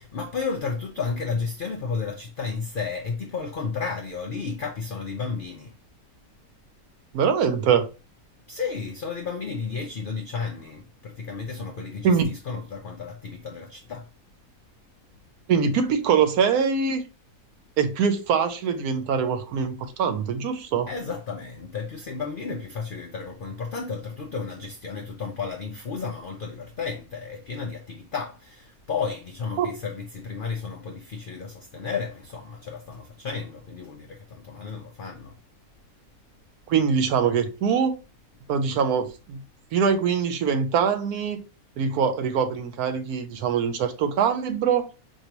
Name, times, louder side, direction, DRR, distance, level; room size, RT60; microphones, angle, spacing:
voice 1, 0.0-5.7 8.5-14.1 20.9-35.4, left 5 dB, 75° left, 0.4 m, -33 dB
voice 2, 7.1-7.9 12.0-12.3 15.5-17.0 17.8-20.9 29.6-29.7 36.7-38.0 38.5-39.4 39.7-41.4 41.8-44.9, right 6 dB, 90° right, 1.2 m, -23 dB
4.6 x 2.6 x 2.9 m
omnidirectional pair, 1.5 m